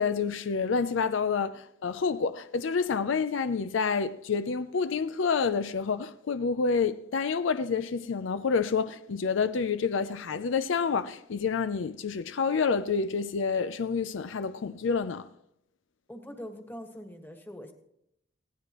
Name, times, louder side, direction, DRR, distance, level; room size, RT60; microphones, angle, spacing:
voice 1, 0.0-15.3, left 5 dB, 70° left, 0.5 m, -28 dB
voice 2, 16.1-17.7, equal, 10° left, 1.5 m, -43 dB
20.5 x 17.0 x 3.0 m
head